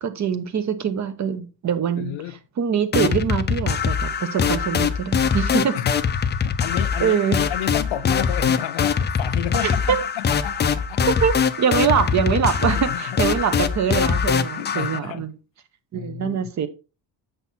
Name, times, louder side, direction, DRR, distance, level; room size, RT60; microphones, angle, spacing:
voice 1, 0.0-5.8 7.0-7.4 9.6-10.0 11.1-15.3 15.9-16.7, right 7 dB, 40° right, 1.0 m, -23 dB
voice 2, 2.0-2.4 5.7-6.0 6.4-11.1 12.6-13.0 14.5-15.2 15.9-16.4, left 13 dB, 85° left, 0.7 m, -31 dB
sound 1, 2.9-15.0, left 6 dB, 25° left, 0.5 m, -23 dB
8.5 x 5.6 x 4.3 m
cardioid pair, 165°, 45 cm